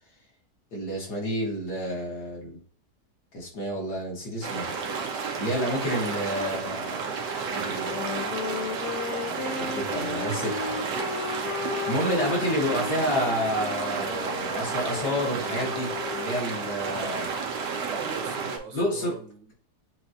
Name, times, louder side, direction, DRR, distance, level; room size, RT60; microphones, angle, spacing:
voice 1, 0.7-2.6 3.3-4.7 5.4-7.1 7.5-8.1 9.4-10.8 11.9-17.3 18.7-19.2, equal, 70° left, 2.2 m, -30 dB
sound 1, 4.4-18.6, right 5 dB, 90° right, 1.4 m, -31 dB
Wind instrument woodwind instrument, 7.7-16.4, left 7 dB, 85° left, 1.3 m, -36 dB
voice 2, 17.6-19.5, right 5 dB, 70° right, 1.4 m, -41 dB
7.2 x 2.5 x 2.7 m
omnidirectional pair, 1.8 m